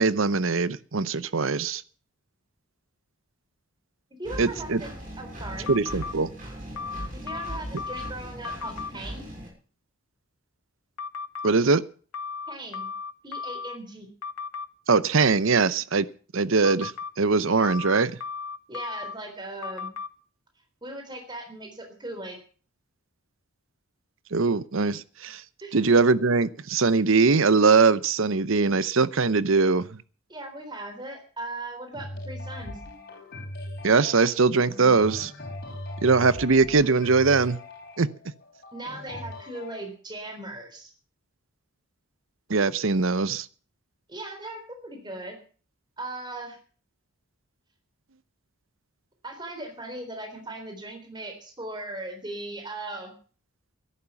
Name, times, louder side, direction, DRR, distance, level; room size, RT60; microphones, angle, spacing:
voice 1, 0.0-1.8 4.4-4.8 5.7-6.3 11.4-11.8 14.9-16.1 16.3-16.9 17.2-18.2 24.3-25.4 25.7-29.9 33.8-35.3 36.0-37.6 38.0-38.1 42.5-43.5, right 4 dB, 65° right, 16 dB, 0.8 m, -21 dB
voice 2, 4.2-4.9 5.2-5.7 7.1-9.3 12.5-12.9 13.2-14.1 18.7-19.9 20.8-22.4 25.6-25.8 30.3-32.8 38.7-40.9 44.1-45.4 46.0-46.6 49.2-53.1, right 2 dB, 20° right, 4 dB, 3.8 m, -38 dB
Engine, 4.2-9.5, equal, 40° right, 6.4 m, -39 dB
sound 1, 5.7-6.1 6.8-8.1 8.4-8.9 11.0-11.5 12.1-13.8 14.2-14.7 16.6-17.1 17.6-19.2 19.6-20.1, left 5 dB, 85° left, 0.9 m, -35 dB
sound 2, 31.9-39.8, left 1 dB, 45° left, 4.2 m, -40 dB
14.0 x 11.0 x 7.0 m, 0.41 s
head